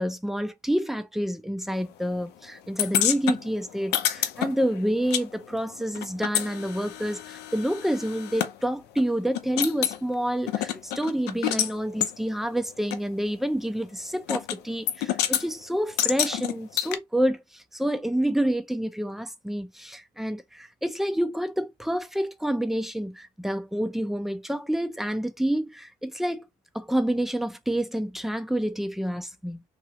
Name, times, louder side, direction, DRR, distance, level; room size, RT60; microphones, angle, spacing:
voice 1, 0.0-26.4 26.7-29.6, right 1 dB, ahead, 0.4 m, -28 dB
sound 1, 2.8-5.3 5.5-8.5 9.0-9.1 9.3-10.0 10.5-11.7 12.0-12.1 12.9-13.0 14.3-14.6 14.9-15.4 16.0-17.0, left 11 dB, 80° left, 0.5 m, -28 dB
2.9 x 2.4 x 2.8 m
cardioid pair, 110°, 17 cm